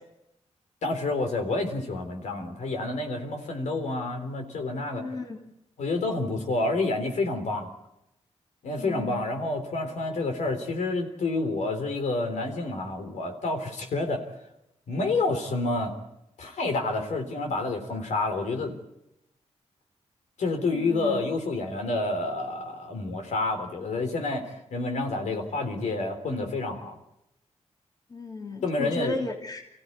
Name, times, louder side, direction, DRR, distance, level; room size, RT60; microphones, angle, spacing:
voice 1, 0.8-5.0 5.8-7.7 8.6-14.2 14.9-15.9 16.4-18.7 20.4-27.0 28.6-29.2, left 2 dB, 80° left, 5 dB, 3.6 m, -29 dB
voice 2, 5.0-5.4 8.8-9.2 20.7-21.2 28.1-29.6, left 2 dB, 35° left, 2 dB, 3.0 m, -34 dB
24.5 x 15.0 x 9.5 m, 0.87 s
cardioid pair, 85°, 12 cm